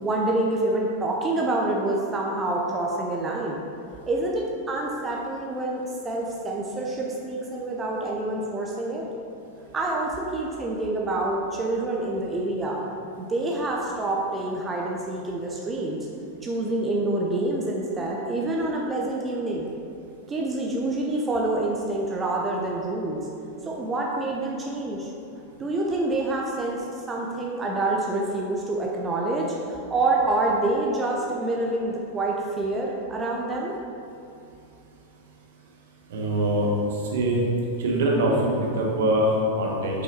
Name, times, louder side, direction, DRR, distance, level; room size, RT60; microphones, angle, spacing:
voice 1, 0.0-3.6 4.1-9.1 9.7-12.8 13.2-16.0 16.4-19.7 20.3-23.2 23.6-25.1 25.6-33.7, right 2 dB, 20° right, -2 dB, 0.8 m, -27 dB
voice 2, 36.1-37.4 37.8-40.0, right 1 dB, 60° right, -2 dB, 1.4 m, -23 dB
7.1 x 5.7 x 4.3 m, 2.8 s
figure-of-eight pair, 90°, 0 cm